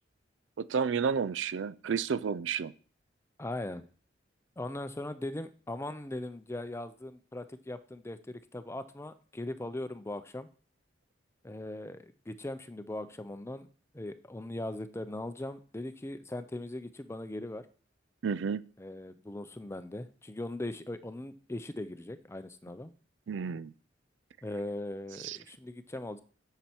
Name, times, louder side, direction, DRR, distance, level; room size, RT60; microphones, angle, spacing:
voice 1, 0.6-2.7 18.2-18.7 23.3-23.7 25.2-25.4, right 6 dB, 80° right, 0.4 m, -31 dB
voice 2, 3.4-3.8 4.6-10.5 11.4-13.7 13.9-17.7 18.8-22.9 24.4-26.2, left 1 dB, 15° left, 0.6 m, -39 dB
7.4 x 6.9 x 4.5 m
head